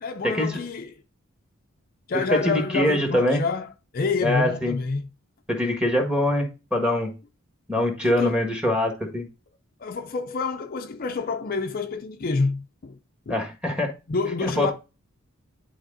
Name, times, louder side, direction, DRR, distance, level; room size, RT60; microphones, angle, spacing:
voice 1, 0.0-0.9 2.1-5.1 8.0-8.4 9.8-13.0 13.3-13.4 14.1-14.7, left 4 dB, 40° left, 0.5 m, -28 dB
voice 2, 2.3-3.4 4.2-4.8 5.5-7.1 7.7-9.3 13.3-13.9 14.4-14.7, left 1 dB, 5° right, 1.5 m, -23 dB
11.0 x 4.2 x 2.6 m
head